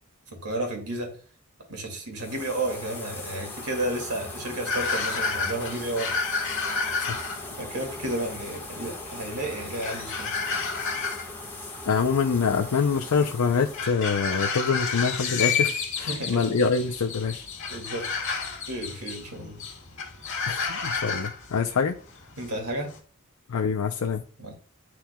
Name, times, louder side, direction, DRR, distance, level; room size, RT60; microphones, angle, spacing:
voice 1, 0.3-1.1 1.7-6.1 7.6-10.3 16.0-16.5 17.7-18.1 18.7-19.6 22.4-22.9 24.4-24.5, right 1 dB, 80° right, 2.3 m, -32 dB
sound 1, 2.2-13.9, left 2 dB, 10° left, 1.4 m, -40 dB
sound 2, 4.7-23.0, left 5 dB, 60° left, 1.8 m, -31 dB
voice 2, 11.9-17.5 20.5-22.0 23.5-24.2, left 5 dB, 90° left, 0.5 m, -25 dB
11.0 x 4.3 x 2.3 m
head